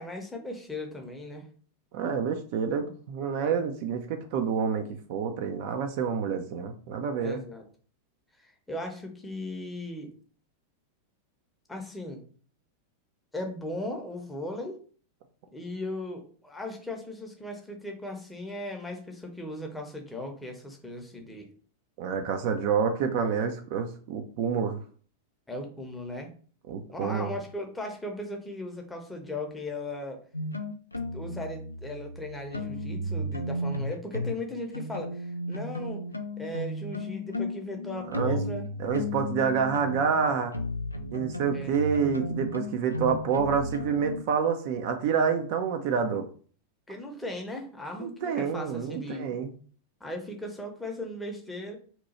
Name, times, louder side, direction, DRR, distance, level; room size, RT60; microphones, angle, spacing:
voice 1, 0.0-1.5 7.2-7.7 8.4-10.1 11.7-12.2 13.3-14.8 15.5-21.5 25.5-26.3 26.9-30.2 31.1-36.0 36.4-38.7 41.5-41.8 46.9-49.3 50.0-51.8, left 1 dB, 10° left, 2 dB, 0.7 m, -37 dB
voice 2, 1.9-7.4 22.0-24.8 26.7-27.3 38.1-38.4 38.8-40.5 41.1-46.3 48.0-49.5, right 6 dB, 45° right, 6 dB, 0.4 m, -28 dB
sound 1, 30.3-34.4 34.7-44.2, left 1 dB, 85° left, 0.3 m, -34 dB
2.9 x 2.2 x 4.0 m, 0.44 s
figure-of-eight pair, 90°, 0 cm